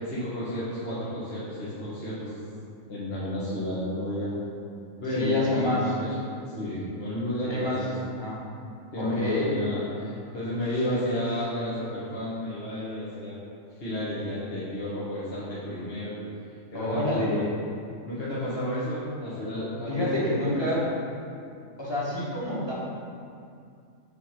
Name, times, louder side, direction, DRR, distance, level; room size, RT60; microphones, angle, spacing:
voice 1, 0.0-2.3 2.9-4.3 5.0-6.1 6.5-7.9 8.9-13.3 13.8-16.1 16.7-17.4 18.1-20.5, left 1 dB, 45° left, -10 dB, 1.7 m, -31 dB
voice 2, 5.1-5.9 7.5-8.4 9.0-9.5 16.7-17.5 19.9-20.8 21.8-22.7, left 1 dB, 20° left, -7 dB, 1.8 m, -27 dB
7.9 x 4.7 x 5.9 m, 2.4 s
omnidirectional pair, 1.4 m